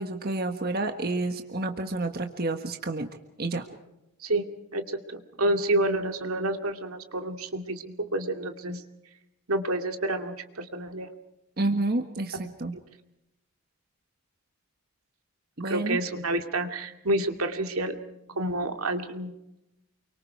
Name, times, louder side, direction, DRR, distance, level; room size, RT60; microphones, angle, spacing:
voice 1, 0.0-3.1 3.4-3.7 11.6-12.8 15.6-16.0, right 2 dB, 45° right, 5 dB, 1.5 m, -29 dB
voice 2, 4.2-8.8 9.5-11.1 15.6-19.4, right 1 dB, 80° right, 5 dB, 2.4 m, -29 dB
29.0 x 24.0 x 4.7 m, 0.87 s
head